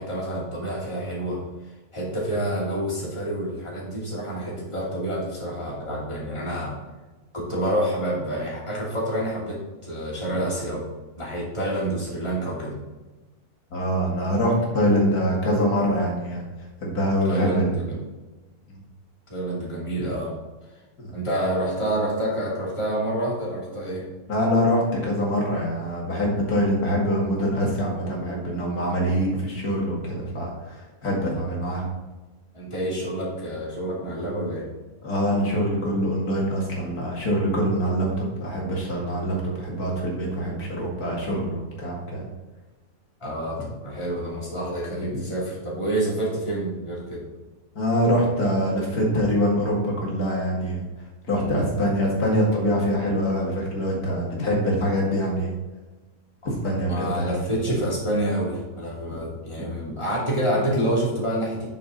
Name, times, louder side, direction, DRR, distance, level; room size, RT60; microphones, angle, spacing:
voice 1, 0.0-1.4 1.9-6.7 7.3-10.8 11.2-12.8 17.2-18.0 19.3-20.3 21.1-24.0 32.5-34.7 43.2-47.2 56.4-56.5 56.8-61.7, right 1 dB, 20° left, -5 dB, 2.8 m, -28 dB
voice 2, 13.7-16.4 16.8-17.8 18.7-18.8 20.0-20.1 21.0-21.2 24.3-31.9 35.0-42.3 44.9-45.2 47.7-50.9 51.3-55.5 56.4-57.7, equal, 80° left, -3 dB, 2.6 m, -24 dB
8.7 x 6.6 x 4.1 m, 1.2 s
omnidirectional pair, 1.6 m